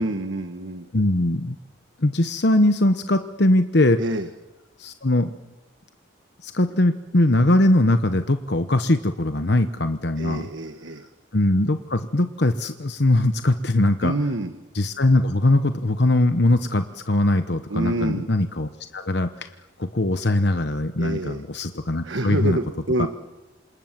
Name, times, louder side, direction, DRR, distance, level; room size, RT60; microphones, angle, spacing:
voice 1, 0.0-0.9 4.0-4.3 10.2-11.1 14.0-14.5 17.7-18.3 21.0-21.4 22.0-23.1, right 1 dB, 75° right, 8 dB, 1.4 m, -27 dB
voice 2, 0.9-1.6 2.0-4.0 4.8-5.3 6.4-10.5 11.3-14.1 14.7-19.5 19.8-22.6 23.0-23.1, left 1 dB, 60° left, 8 dB, 1.1 m, -21 dB
28.0 x 27.0 x 7.6 m, 1.0 s
head